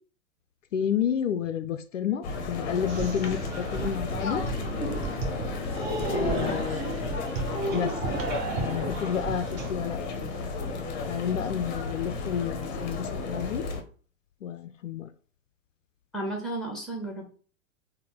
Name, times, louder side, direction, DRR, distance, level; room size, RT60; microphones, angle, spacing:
voice 1, 0.7-4.4 6.1-7.0 7.7-7.9 8.6-10.3 11.1-13.6 14.4-15.1, left 8 dB, 70° left, 0.5 m, -30 dB
sound 1, 2.2-13.8, left 4 dB, 35° left, 0.8 m, -33 dB
sound 2, 2.9-9.7, right 3 dB, 30° right, 1.0 m, -33 dB
voice 2, 16.1-17.3, right 2 dB, ahead, 1.0 m, -33 dB
3.9 x 2.2 x 3.7 m
figure-of-eight pair, 100°, 39 cm